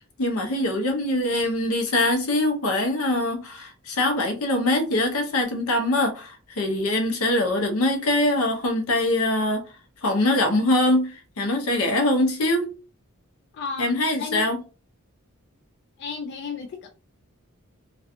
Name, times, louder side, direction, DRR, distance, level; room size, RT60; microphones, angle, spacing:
voice 1, 0.2-9.6 10.0-12.7 13.8-14.6, left 1 dB, 85° left, 0.7 m, -23 dB
voice 2, 13.5-13.9 14.2-14.4 16.0-16.9, left 5 dB, 55° left, 0.3 m, -33 dB
2.4 x 2.3 x 2.6 m
head